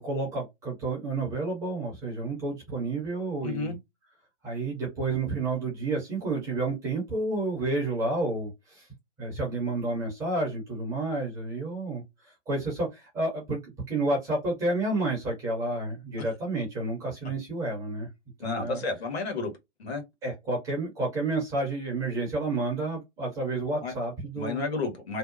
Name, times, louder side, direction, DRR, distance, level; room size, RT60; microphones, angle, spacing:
voice 1, 0.0-3.7 4.4-8.9 9.2-18.1 18.4-18.8 20.2-24.6, right 2 dB, 10° right, 0.5 m, -30 dB
voice 2, 3.4-3.8 18.4-19.5 19.8-20.0 23.8-23.9 24.3-25.2, left 3 dB, 60° left, 1.1 m, -31 dB
2.7 x 2.1 x 2.4 m
figure-of-eight pair, 120°, 36 cm